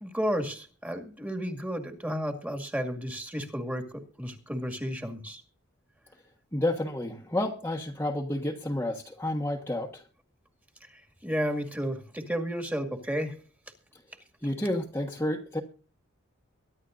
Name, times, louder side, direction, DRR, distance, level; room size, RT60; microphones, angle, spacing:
voice 1, 0.0-5.4 10.8-13.4, equal, 10° right, 5 dB, 2.1 m, -32 dB
voice 2, 6.5-10.0 14.4-15.6, left 1 dB, 10° left, 0 dB, 1.4 m, -30 dB
23.0 x 11.5 x 2.6 m, 0.36 s
head